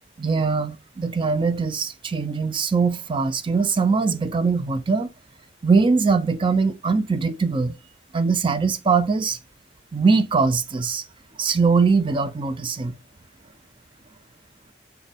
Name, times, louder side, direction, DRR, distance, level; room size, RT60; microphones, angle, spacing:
voice 1, 0.2-5.1 5.6-7.8 8.1-9.4 9.9-11.0 11.4-12.9, right 4 dB, 30° right, 0.4 m, -21 dB
6.3 x 2.2 x 3.4 m
head